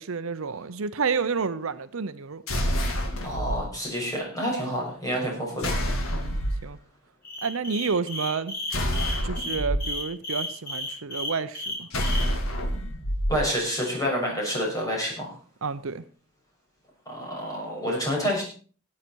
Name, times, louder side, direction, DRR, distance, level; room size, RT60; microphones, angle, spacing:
voice 1, 0.0-2.4 6.1-6.8 7.4-8.5 9.2-11.9 15.6-16.0, right 5 dB, 65° right, 0.7 m, -30 dB
sound 1, 2.5-3.6 5.6-6.6 8.7-9.8 11.9-13.4, equal, 65° left, 2.2 m, -27 dB
voice 2, 3.2-5.7 13.3-15.3 17.1-18.4, equal, 15° left, 6.2 m, -28 dB
sound 2, 7.2-12.3, left 2 dB, 40° left, 3.7 m, -33 dB
17.0 x 8.8 x 4.6 m
head